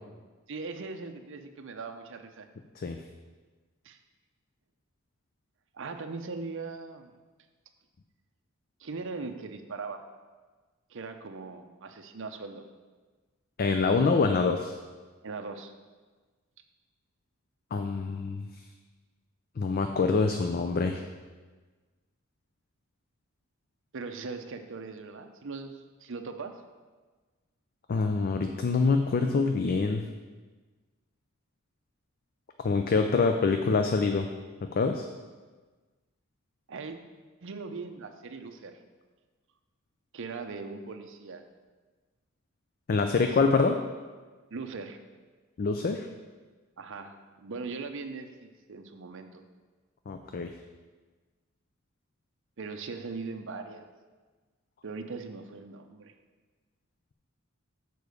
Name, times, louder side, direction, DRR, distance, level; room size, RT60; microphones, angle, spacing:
voice 1, 0.5-2.5 3.8-4.0 5.7-7.1 8.8-10.0 10.9-12.7 15.2-15.7 23.9-25.8 26.0-26.6 36.7-37.0 37.4-38.7 40.1-41.4 43.1-43.3 44.5-45.0 46.8-49.5 52.6-53.9 54.8-56.1, right 4 dB, 65° right, 6 dB, 0.6 m, -40 dB
voice 2, 13.6-14.8 17.7-18.4 19.6-21.0 27.9-30.0 32.6-34.3 34.6-35.1 42.9-43.8 45.6-46.1 50.1-50.5, left 4 dB, 45° left, 6 dB, 0.4 m, -25 dB
6.8 x 4.6 x 6.5 m, 1.4 s
head